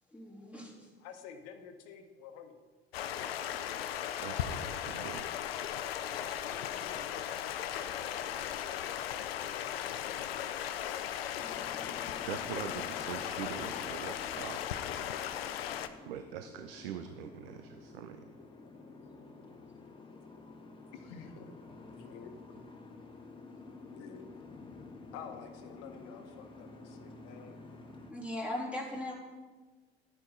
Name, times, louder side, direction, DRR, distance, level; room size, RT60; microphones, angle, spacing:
voice 1, 0.1-0.9 28.1-29.1, left 1 dB, 5° right, -4 dB, 3.4 m, -39 dB
voice 2, 1.0-2.6 6.0-11.0 20.9-22.7 23.8-24.3 25.1-27.6, left 7 dB, 50° left, 7 dB, 1.3 m, -50 dB
Stream, 2.9-15.9, left 10 dB, 70° left, 0.6 m, -37 dB
voice 3, 4.2-5.3 12.3-14.6 16.0-18.2, right 9 dB, 65° right, 9 dB, 0.6 m, -43 dB
Boat Water vehicle, 11.4-28.1, left 3 dB, 15° left, 1.6 m, -51 dB
11.5 x 9.6 x 3.9 m, 1.3 s
figure-of-eight pair, 65°, 31 cm